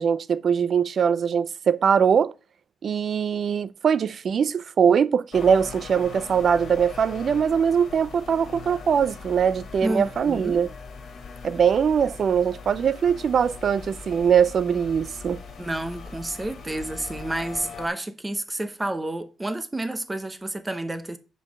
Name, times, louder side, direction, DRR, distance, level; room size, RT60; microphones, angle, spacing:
voice 1, 0.0-2.3 2.8-10.7 11.4-15.4, right 7 dB, 45° right, 0.4 m, -22 dB
sound 1, 5.3-17.9, left 4 dB, 55° left, 1.8 m, -40 dB
voice 2, 9.8-10.7 15.6-21.2, right 1 dB, 15° right, 0.8 m, -30 dB
5.4 x 5.3 x 6.2 m
cardioid pair, 135°, 0 cm